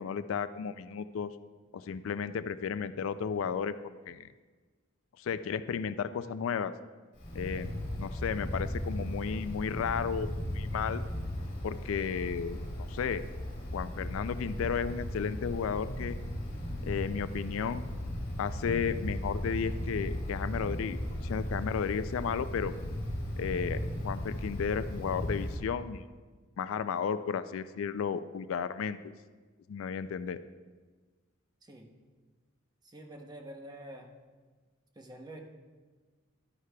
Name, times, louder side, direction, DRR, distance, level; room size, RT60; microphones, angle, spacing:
voice 1, 0.0-1.3 1.7-3.7 4.1-4.3 5.2-6.7 7.3-11.0 11.6-12.6 12.9-13.2 13.7-16.2 16.8-17.8 18.4-22.7 23.4-26.0 26.6-29.1 29.7-30.4, left 6 dB, 75° left, 13 dB, 0.3 m, -33 dB
Wind, 7.2-25.6, left 1 dB, 45° left, 2.4 m, -36 dB
voice 2, 32.8-34.1 35.0-35.4, right 1 dB, 20° right, 3 dB, 0.8 m, -47 dB
11.5 x 9.5 x 2.3 m, 1.4 s
head